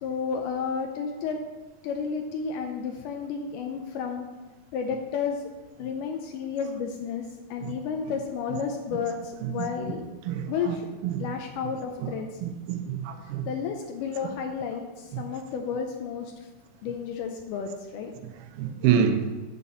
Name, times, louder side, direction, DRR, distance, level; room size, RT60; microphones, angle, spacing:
voice 1, 0.0-1.4 1.8-4.3 4.7-5.4 5.8-7.2 7.5-10.0 10.5-10.9 11.2-12.3 13.5-16.5 16.8-18.1, left 6 dB, 85° left, 3 dB, 1.9 m, -32 dB
voice 2, 10.3-10.8 11.1-11.2 12.4-13.4 18.6-19.3, right 8 dB, 85° right, 7 dB, 2.6 m, -26 dB
10.5 x 4.2 x 7.0 m, 1.3 s
omnidirectional pair, 4.4 m